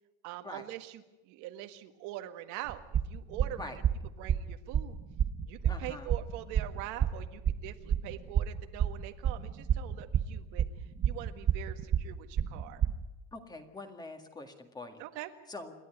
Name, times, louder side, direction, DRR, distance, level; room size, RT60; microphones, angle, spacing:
voice 1, 0.2-3.8 4.2-5.0 5.4-12.9 15.0-15.3, right 14 dB, 75° right, 7 dB, 1.7 m, -44 dB
sound 1, 2.7-13.0, right 9 dB, 25° right, 0.7 m, -29 dB
voice 2, 5.7-6.1 13.3-15.0 15.5-15.7, left 2 dB, 15° left, 6 dB, 1.9 m, -44 dB
28.0 x 11.5 x 9.9 m, 1.0 s
cardioid pair, 160°, 30 cm